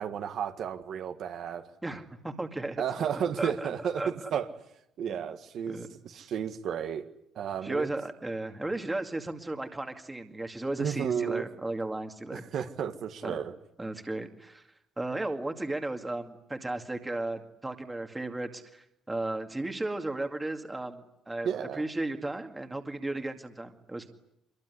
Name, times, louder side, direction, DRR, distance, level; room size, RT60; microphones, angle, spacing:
voice 1, 0.0-1.6 2.8-4.0 4.3-4.5 5.0-5.8 6.0-7.0 7.3-7.9 10.8-11.4 12.3-13.5 21.4-21.8, right 8 dB, 50° right, 7 dB, 1.6 m, -32 dB
voice 2, 1.8-2.8 3.1-3.7 3.9-4.3 5.1-5.3 5.7-5.9 7.6-12.4 13.2-13.4 13.8-14.7 15.0-24.1, right 2 dB, 10° right, 6 dB, 2.2 m, -35 dB
25.5 x 22.5 x 9.9 m, 0.81 s
cardioid pair, 160°, 0 cm